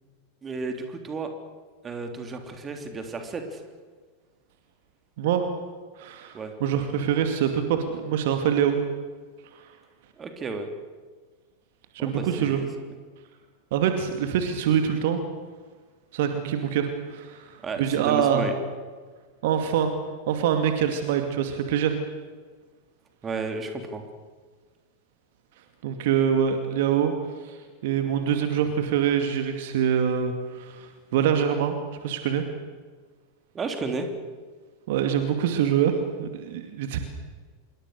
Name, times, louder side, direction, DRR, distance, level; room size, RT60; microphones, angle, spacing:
voice 1, 0.4-1.3 1.8-3.6 6.3-6.5 10.2-10.7 12.0-12.7 17.6-18.5 23.2-24.0 33.5-34.1, right 4 dB, 20° right, 6 dB, 3.4 m, -32 dB
voice 2, 5.2-5.5 6.0-8.8 11.9-12.6 13.7-15.2 16.1-18.5 19.4-19.9 20.3-21.9 25.8-27.1 27.4-31.8 32.0-32.4 34.9-37.0, right 8 dB, 50° right, 6 dB, 2.4 m, -25 dB
26.5 x 23.0 x 6.7 m, 1.5 s
figure-of-eight pair, 90°, 0 cm